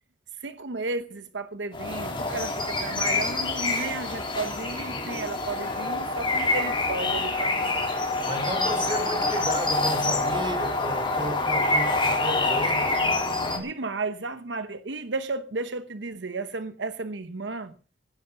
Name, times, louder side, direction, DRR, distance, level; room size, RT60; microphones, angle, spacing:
voice 1, 0.4-7.9 13.5-17.7, right 3 dB, 70° right, 1.0 m, -33 dB
sound 1, 1.7-13.6, left 2 dB, 30° left, 3.8 m, -26 dB
voice 2, 8.2-12.9, right 1 dB, 25° right, 3.2 m, -33 dB
17.0 x 11.0 x 5.9 m
head